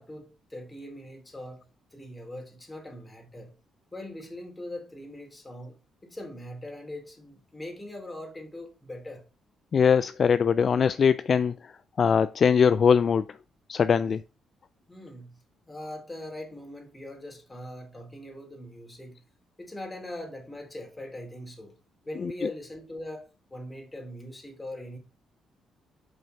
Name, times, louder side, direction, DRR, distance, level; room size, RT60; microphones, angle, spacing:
voice 1, 0.0-1.7 1.9-3.5 3.9-5.8 6.0-9.2 14.9-15.4 15.7-19.2 19.6-21.8 22.0-25.0, left 1 dB, 15° left, 2.8 m, -41 dB
voice 2, 9.7-11.7 12.0-13.2 13.7-14.2 22.2-22.3, left 6 dB, 50° left, 0.3 m, -21 dB
5.6 x 5.5 x 5.3 m
cardioid pair, 90°, 0 cm